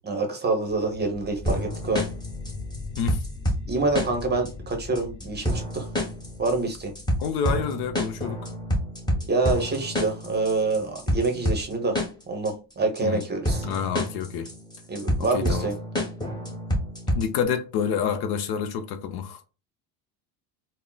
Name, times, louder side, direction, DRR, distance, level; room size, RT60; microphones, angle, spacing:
voice 1, 0.0-2.1 3.7-5.9 6.4-6.9 9.3-12.0 12.3-13.7 14.9-15.7, right 3 dB, 20° right, 0.8 m, -26 dB
sound 1, 0.7-11.7, left 3 dB, 25° left, 1.2 m, -41 dB
sound 2, 1.5-17.4, equal, 10° left, 0.9 m, -29 dB
voice 2, 7.2-8.5 11.3-11.4 13.0-13.2 13.6-14.5 15.2-15.7 17.1-19.4, left 7 dB, 60° left, 0.6 m, -28 dB
3.6 x 2.0 x 2.2 m
supercardioid pair, 100°, 45 cm